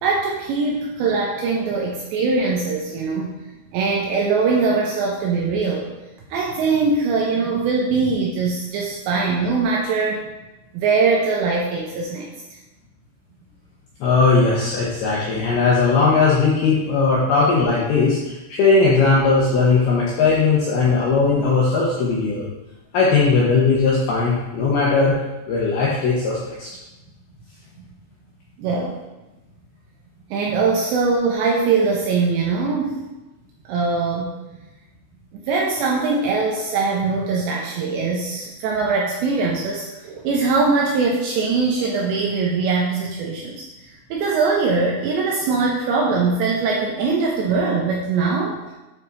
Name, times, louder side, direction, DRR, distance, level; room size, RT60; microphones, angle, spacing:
voice 1, 0.0-3.3 3.7-5.9 6.3-10.3 10.7-12.3 28.6-29.0 30.3-33.0 33.7-34.3 35.3-43.6 44.1-48.7, right 4 dB, 85° right, -1 dB, 2.6 m, -21 dB
voice 2, 14.0-22.4 22.9-25.1 25.5-26.7, left 4 dB, 80° left, -5 dB, 2.2 m, -18 dB
9.1 x 4.2 x 4.0 m, 1.0 s
omnidirectional pair, 5.8 m